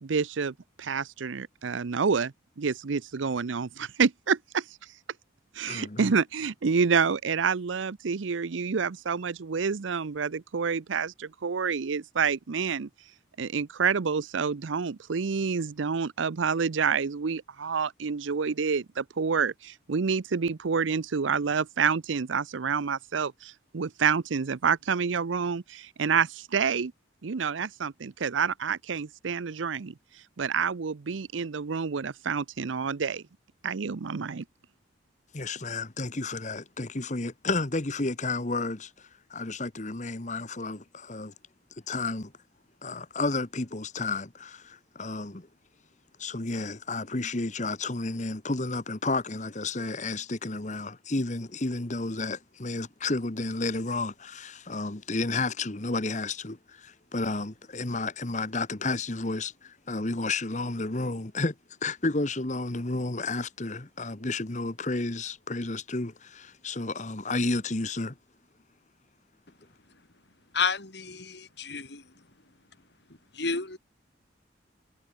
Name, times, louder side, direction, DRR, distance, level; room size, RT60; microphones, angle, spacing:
voice 1, 0.0-4.6 5.6-12.9 13.4-26.9 27.2-29.9 30.4-33.2 33.6-34.4, right 5 dB, 80° right, 0.6 m, -28 dB
voice 2, 5.7-6.1 35.3-41.3 41.9-42.3 42.8-45.5 46.2-61.5 61.8-68.1, left 3 dB, 40° left, 1.2 m, -31 dB
voice 3, 70.5-72.3 73.3-73.8, left 5 dB, 60° left, 2.7 m, -31 dB
head